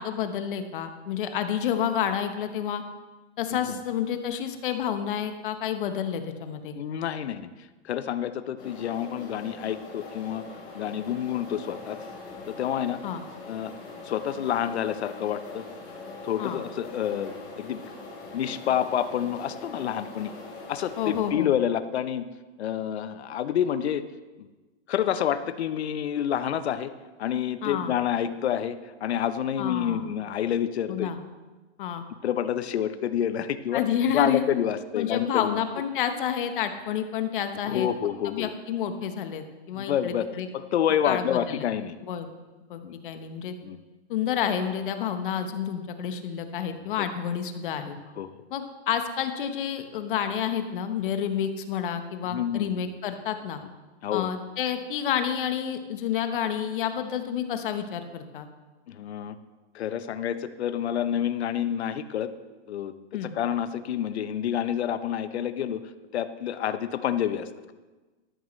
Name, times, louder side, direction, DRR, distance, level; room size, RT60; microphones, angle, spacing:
voice 1, 0.0-2.8 3.4-6.7 13.0-13.2 16.4-16.6 21.0-21.5 27.6-27.9 29.6-30.1 30.9-31.2 31.8-32.0 33.7-34.4 34.9-37.9 38.2-40.5 41.0-41.7 42.0-42.3 42.7-43.5 44.1-48.0 48.5-53.6 54.1-58.5 63.1-63.3, left 9 dB, 50° left, 8 dB, 1.2 m, -29 dB
voice 2, 6.7-7.5 7.8-10.4 10.7-12.0 12.5-13.0 13.5-13.7 14.0-15.6 16.2-17.8 18.3-20.3 20.7-22.2 22.6-24.0 24.4-24.5 24.9-26.9 27.2-31.1 32.2-33.8 34.1-35.5 37.6-38.5 39.7-40.3 40.5-42.0 42.8-42.9 43.6-43.8 47.0-47.1 48.2-48.3 52.2-52.7 54.0-54.3 58.9-59.4 59.7-62.3 62.7-62.9 63.3-65.8 66.1-67.7, left 10 dB, 70° left, 12 dB, 0.9 m, -28 dB
sound 1, 8.6-21.3, left 3 dB, 25° left, 3.7 m, -42 dB
13.0 x 12.0 x 3.2 m, 1.2 s
hypercardioid pair, 155°, 34 cm